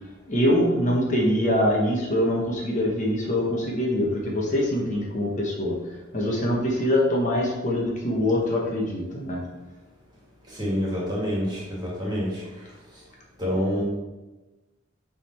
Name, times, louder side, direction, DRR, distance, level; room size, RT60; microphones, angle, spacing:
voice 1, 0.3-5.8 6.1-9.4, left 1 dB, 40° left, -2 dB, 1.1 m, -24 dB
voice 2, 10.5-12.4 13.4-13.8, equal, 20° right, -5 dB, 2.1 m, -27 dB
7.1 x 3.7 x 4.4 m, 1.1 s
head